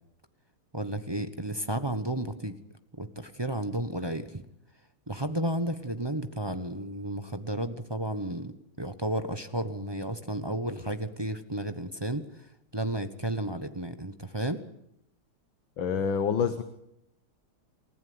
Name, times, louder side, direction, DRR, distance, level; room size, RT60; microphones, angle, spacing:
voice 1, 0.7-2.5 3.0-4.4 5.1-12.2 12.7-14.6, right 1 dB, 20° right, 9 dB, 0.7 m, -32 dB
voice 2, 15.8-16.6, left 6 dB, 65° left, 10 dB, 1.9 m, -27 dB
29.0 x 15.0 x 9.6 m, 0.79 s
omnidirectional pair, 2.3 m